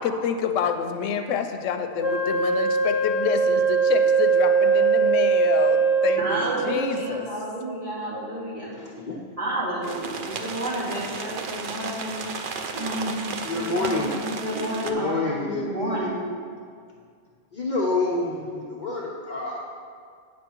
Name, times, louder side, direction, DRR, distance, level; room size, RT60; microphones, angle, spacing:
voice 1, 0.0-7.3, left 7 dB, 90° left, 7 dB, 0.9 m, -28 dB
Wind instrument woodwind instrument, 2.0-6.6, right 5 dB, 15° right, 0.9 m, -21 dB
voice 2, 6.2-8.7 9.4-12.2 12.7-13.3 13.6-16.2, right 1 dB, 30° right, -8 dB, 2.3 m, -30 dB
voice 3, 8.7-9.2 13.4-14.2 14.8-16.1 17.5-19.6, left 3 dB, 40° left, -4 dB, 1.0 m, -28 dB
sound 1, 9.8-14.9, right 4 dB, 55° right, 0.7 m, -34 dB
8.4 x 6.3 x 4.5 m, 2.1 s
omnidirectional pair, 1.3 m